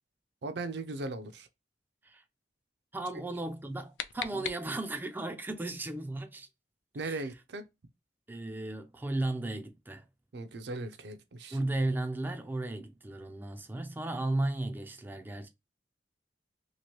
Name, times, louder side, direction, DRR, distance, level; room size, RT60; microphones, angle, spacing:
voice 1, 0.4-1.5 3.1-3.2 4.3-4.5 6.9-7.6 10.3-11.6, right 2 dB, 70° right, 0.5 m, -38 dB
voice 2, 2.9-6.5 7.0-7.2 8.3-10.1 11.5-15.5, right 2 dB, 10° right, 0.3 m, -35 dB
sound 1, 3.5-5.2, left 9 dB, 90° left, 0.4 m, -41 dB
2.9 x 2.5 x 2.9 m
head